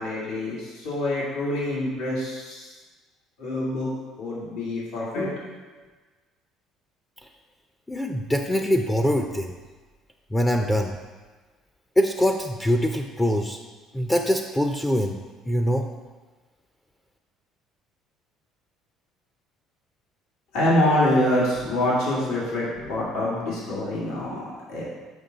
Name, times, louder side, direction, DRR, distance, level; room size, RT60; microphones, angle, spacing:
voice 1, 0.0-2.7 3.4-3.9 4.2-5.3 20.5-24.8, left 1 dB, 90° left, -6 dB, 2.0 m, -25 dB
voice 2, 7.9-9.5 10.3-10.9 12.0-13.6 13.9-15.2 15.5-15.9, equal, 10° left, 4 dB, 0.4 m, -23 dB
6.7 x 5.4 x 3.9 m, 1.3 s
cardioid pair, 115°, 0 cm